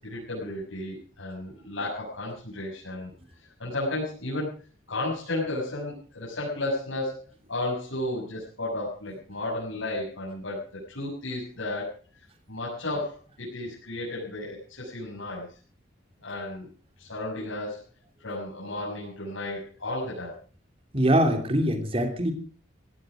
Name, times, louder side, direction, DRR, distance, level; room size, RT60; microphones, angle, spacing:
voice 1, 0.0-3.1 3.6-4.5 4.9-11.9 12.5-15.6 16.2-16.7 17.0-17.8 18.2-20.3, left 2 dB, 85° left, -6 dB, 7.1 m, -33 dB
voice 2, 20.9-22.3, right 1 dB, 30° right, 6 dB, 3.1 m, -23 dB
17.5 x 16.5 x 5.1 m, 0.39 s
head